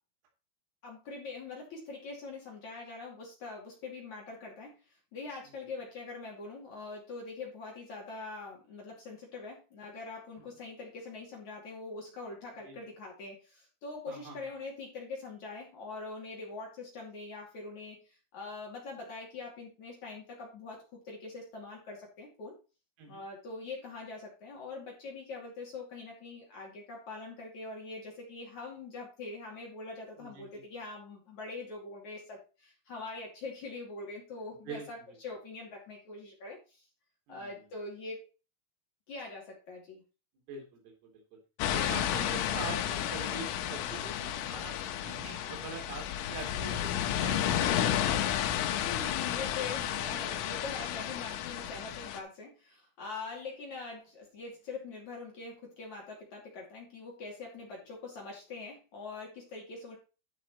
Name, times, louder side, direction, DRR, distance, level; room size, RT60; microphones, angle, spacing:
voice 1, 0.8-4.7 5.1-22.5 23.1-36.8 37.3-38.3 39.1-40.0 48.8-60.0, left 3 dB, 40° left, -2 dB, 3.4 m, -43 dB
voice 2, 14.1-14.5 23.0-23.2 30.2-30.4 34.7-35.2 37.3-37.6 40.5-41.2 41.7-47.8, right 4 dB, 80° right, 1 dB, 5.8 m, -44 dB
sound 1, 41.6-52.2, left 10 dB, 80° left, 3.3 m, -32 dB
12.0 x 6.4 x 4.3 m, 0.32 s
omnidirectional pair, 6.0 m